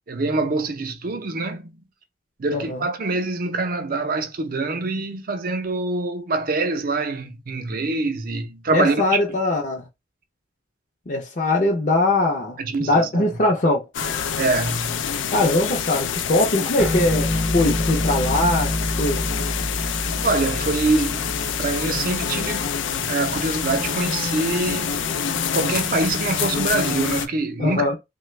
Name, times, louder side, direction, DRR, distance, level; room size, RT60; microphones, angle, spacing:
voice 1, 0.1-1.8 2.4-9.4 12.6-13.4 14.4-15.1 19.8-25.0 25.5-28.0, right 3 dB, 50° right, 0.5 m, -25 dB
voice 2, 2.5-2.8 8.7-9.9 11.1-13.8 15.3-19.2 27.6-28.0, left 2 dB, 40° left, 0.6 m, -21 dB
sound 1, 13.9-27.3, left 7 dB, 85° left, 0.4 m, -26 dB
sound 2, 16.8-23.6, left 1 dB, 5° right, 0.6 m, -28 dB
3.1 x 2.1 x 3.1 m
head